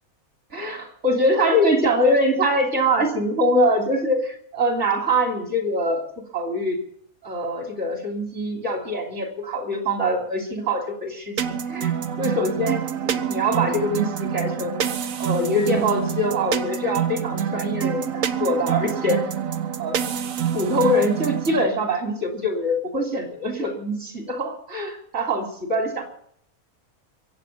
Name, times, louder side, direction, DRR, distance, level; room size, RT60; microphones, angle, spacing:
voice 1, 0.5-6.8 7.2-11.9 12.2-14.9 15.2-19.2 19.8-20.0 20.5-26.1, equal, 55° right, 2 dB, 3.5 m, -23 dB
sound 1, 11.4-21.7, right 8 dB, 70° right, 1.2 m, -27 dB
23.5 x 8.3 x 5.7 m, 0.65 s
omnidirectional pair, 1.5 m